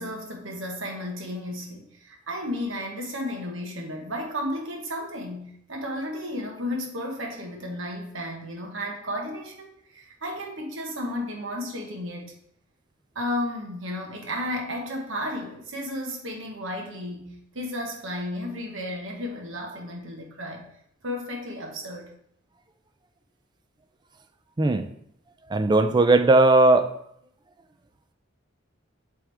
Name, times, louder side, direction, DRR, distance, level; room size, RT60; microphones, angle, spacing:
voice 1, 0.0-12.3 13.1-20.7 21.0-22.1, left 1 dB, 75° right, 1 dB, 1.3 m, -33 dB
voice 2, 24.6-24.9 25.5-26.9, right 2 dB, 20° right, 9 dB, 0.4 m, -18 dB
7.9 x 3.6 x 3.4 m, 0.69 s
head